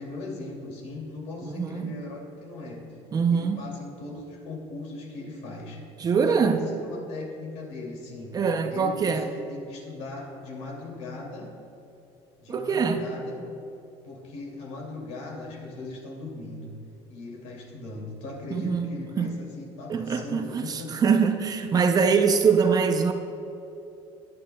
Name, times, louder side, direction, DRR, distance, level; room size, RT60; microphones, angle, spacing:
voice 1, 0.0-2.8 3.3-5.8 6.2-8.4 8.7-11.5 12.4-13.4 14.0-16.7 17.1-21.0, left 2 dB, 70° left, -1 dB, 2.8 m, -39 dB
voice 2, 1.4-2.0 3.1-3.7 6.0-6.7 8.3-9.3 12.5-13.1 18.5-19.3 19.9-23.1, right 5 dB, 30° right, 6 dB, 0.7 m, -23 dB
20.0 x 9.7 x 2.4 m, 2.8 s
cardioid pair, 130°, 12 cm